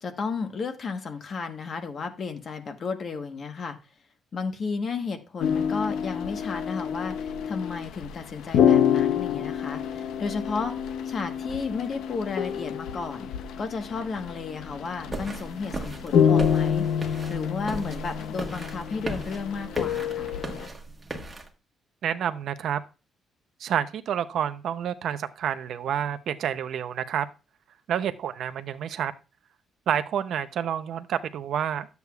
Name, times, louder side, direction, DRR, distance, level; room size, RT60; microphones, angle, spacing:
voice 1, 0.0-3.8 4.3-10.8 11.0-13.3 13.6-20.3, left 4 dB, 35° left, 6 dB, 1.2 m, -33 dB
sound 1, 5.4-20.7, left 8 dB, 80° left, 0.6 m, -27 dB
sound 2, 15.1-21.5, right 2 dB, 15° right, 1.3 m, -37 dB
voice 2, 22.0-22.8 23.6-27.3 27.9-29.1 29.9-31.9, right 9 dB, 60° right, 11 dB, 0.6 m, -29 dB
12.0 x 8.2 x 2.3 m, 0.30 s
cardioid pair, 170°, 0 cm